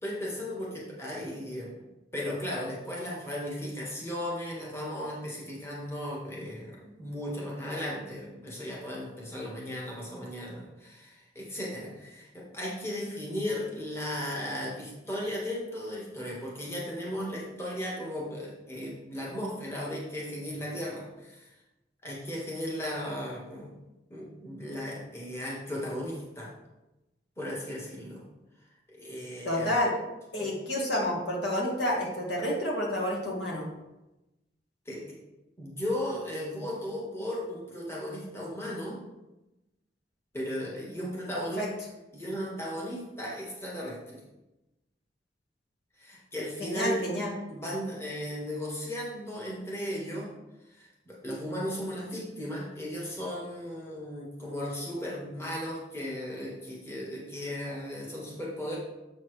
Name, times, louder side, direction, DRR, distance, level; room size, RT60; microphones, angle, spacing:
voice 1, 0.0-1.7 2.1-21.5 22.0-23.7 24.1-26.5 27.4-28.2 28.9-29.8 30.4-30.5 34.8-35.0 35.6-39.0 40.3-41.6 42.1-44.2 46.0-47.0 47.5-50.3 50.7-58.8, equal, 15° left, -4 dB, 1.5 m, -36 dB
voice 2, 29.5-29.9 30.3-33.7 41.6-41.7 46.6-47.3, left 1 dB, 70° left, -3 dB, 2.1 m, -29 dB
7.3 x 7.1 x 3.3 m, 0.98 s
head